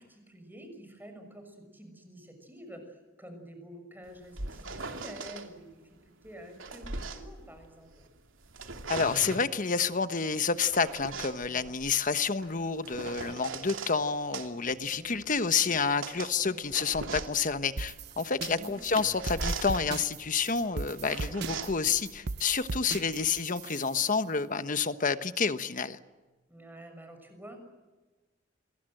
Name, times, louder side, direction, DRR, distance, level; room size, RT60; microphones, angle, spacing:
voice 1, 0.0-8.1 11.5-11.7 14.9-15.2 16.4-16.7 18.4-18.7 26.5-27.6, right 1 dB, 10° right, 6 dB, 6.3 m, -49 dB
sound 1, 4.1-5.5 6.3-8.1 8.4-9.6 10.3-14.0 14.3-23.4, right 3 dB, 90° right, 2.9 m, -40 dB
voice 2, 8.9-26.0, left 5 dB, 45° left, 11 dB, 1.2 m, -29 dB
sound 2, 17.8-24.1, right 3 dB, 60° right, 0.7 m, -39 dB
28.5 x 22.5 x 7.9 m, 1.3 s
head